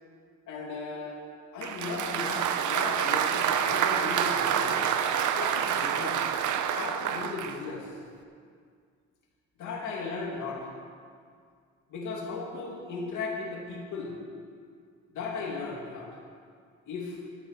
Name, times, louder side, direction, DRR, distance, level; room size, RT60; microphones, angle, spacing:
voice 1, 0.5-1.2 1.5-4.9 5.4-6.3 6.7-7.9 9.6-10.7 11.9-14.1 15.1-16.1 16.9-17.2, left 4 dB, 80° left, -2 dB, 2.7 m, -36 dB
Applause, 1.6-7.6, right 8 dB, 75° right, 0.8 m, -27 dB
12.5 x 8.0 x 7.6 m, 2.1 s
cardioid pair, 90°, 30 cm